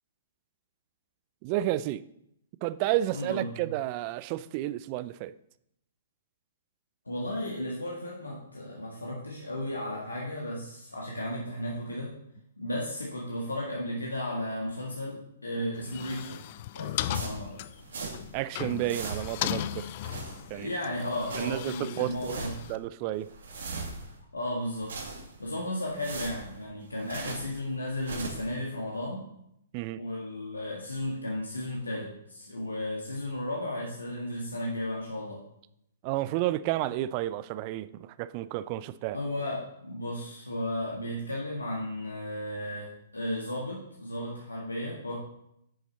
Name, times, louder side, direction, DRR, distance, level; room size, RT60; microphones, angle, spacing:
voice 1, 1.4-2.0 2.6-5.3 18.3-19.9 20.5-20.7 21.3-22.4 22.7-23.3 29.7-30.0 36.0-39.2, right 15 dB, 40° right, 0.4 m, -31 dB
voice 2, 3.1-3.7 7.1-12.1 12.6-16.5 16.8-17.6 20.5-22.5 24.3-24.9 25.4-29.3 30.0-35.4 39.1-45.2, left 1 dB, 85° left, 1.7 m, -34 dB
sound 1, 15.8-22.8, left 12 dB, 45° left, 0.4 m, -37 dB
sound 2, 17.1-18.4 18.6-19.5 19.9-20.7 21.0-21.7 22.1-22.7 23.1-24.2 24.6-25.5 25.8-27.6 27.9-28.5, right 3 dB, 65° right, 2.3 m, -40 dB
9.8 x 7.1 x 4.1 m
figure-of-eight pair, 120°, 0 cm